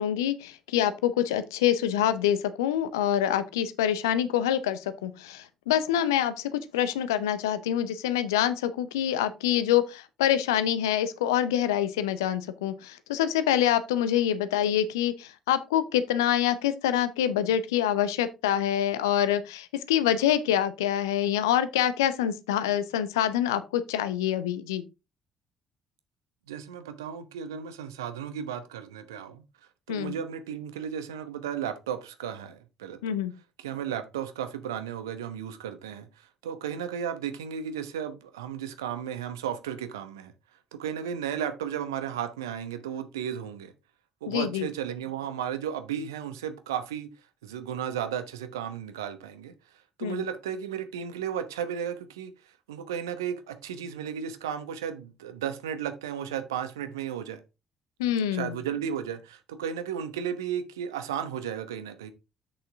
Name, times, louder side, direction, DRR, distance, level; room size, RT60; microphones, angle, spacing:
voice 1, 0.0-24.8 29.9-30.1 33.0-33.3 44.3-44.7 50.0-50.2 58.0-58.6, left 10 dB, 70° left, 0.7 m, -26 dB
voice 2, 26.5-29.4 29.9-33.1 33.6-40.3 40.7-43.7 44.2-47.1 47.4-49.5 50.0-57.4 58.3-62.1, right 8 dB, 75° right, 0.9 m, -34 dB
7.8 x 6.6 x 3.5 m
figure-of-eight pair, 45°, 2 cm